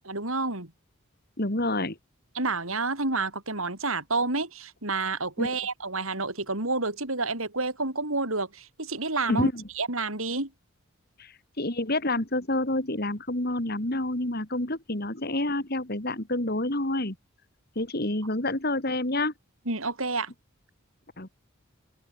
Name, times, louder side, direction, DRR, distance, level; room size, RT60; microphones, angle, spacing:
voice 1, 0.1-0.7 2.3-9.5 9.8-10.5 19.7-20.3, right 3 dB, 75° right, 5.9 m, -29 dB
voice 2, 1.4-2.0 5.4-5.5 9.3-9.6 11.2-17.2 17.7-19.3 21.2-21.3, left 1 dB, 45° left, 2.8 m, -28 dB
open air
head